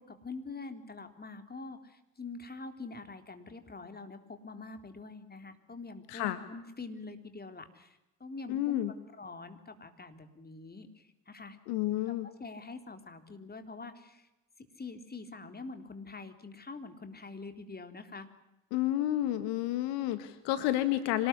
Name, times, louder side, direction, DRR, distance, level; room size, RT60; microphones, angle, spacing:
voice 1, 0.0-8.8 9.2-11.6 12.1-14.3 14.6-18.3, left 3 dB, 20° left, 7 dB, 3.8 m, -45 dB
voice 2, 6.1-6.4 8.5-8.9 11.7-12.3 18.7-21.3, left 14 dB, 65° left, 12 dB, 1.7 m, -30 dB
26.0 x 19.5 x 9.9 m, 0.94 s
figure-of-eight pair, 55°, 45 cm